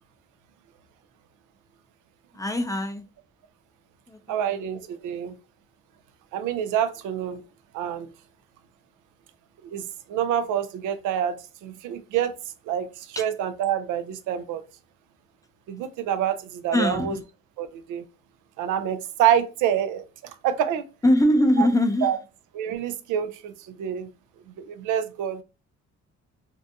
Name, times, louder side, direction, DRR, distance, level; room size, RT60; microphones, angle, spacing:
voice 1, 2.3-3.1 4.1-4.5 13.2-13.3 16.7-17.2 21.0-22.1, left 1 dB, 10° left, 0.3 m, -22 dB
voice 2, 4.3-5.4 6.3-7.4 7.7-8.1 9.6-9.8 10.1-12.3 12.7-14.6 15.7-17.1 17.6-18.0 18.6-20.0 20.4-20.8 21.6-21.7 22.0-22.2 22.5-24.1 24.6-25.4, right 9 dB, 85° right, 0.5 m, -27 dB
2.7 x 2.2 x 2.5 m
cardioid pair, 90°, 30 cm